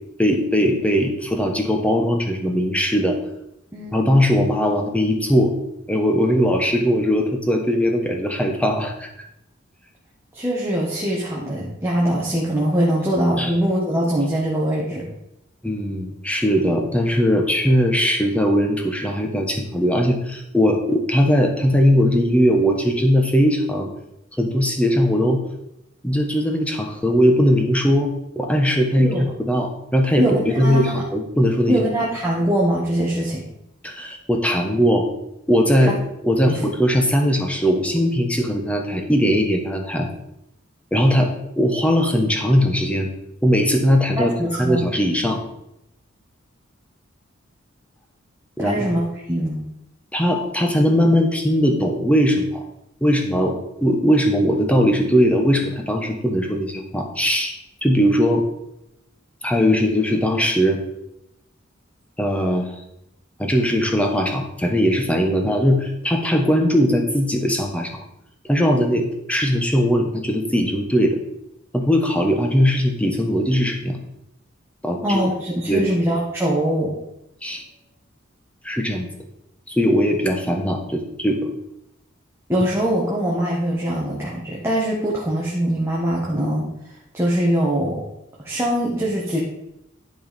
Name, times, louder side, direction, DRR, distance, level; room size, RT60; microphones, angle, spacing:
voice 1, 0.2-3.2 3.9-5.5 5.9-9.1 13.4-13.5 15.6-23.9 24.4-25.4 26.0-28.1 28.4-31.8 33.8-35.1 35.5-36.0 36.2-40.1 40.9-43.1 43.4-45.4 48.6-48.9 50.1-52.6 53.0-58.4 59.4-60.8 62.2-62.8 63.4-68.0 68.5-71.2 71.7-74.0 74.8-75.2 75.7-76.0 77.4-77.6 78.6-79.1 79.7-81.5, equal, 5° left, 3 dB, 1.2 m, -19 dB
voice 2, 3.7-4.1 10.3-15.0 29.0-29.2 30.2-30.9 31.7-33.4 35.8-35.9 36.5-36.6 44.2-44.8 48.6-49.6 75.0-76.9 82.5-86.7 87.1-88.0 88.4-89.4, right 1 dB, 15° right, -5 dB, 1.5 m, -22 dB
11.0 x 4.8 x 5.3 m, 0.84 s
head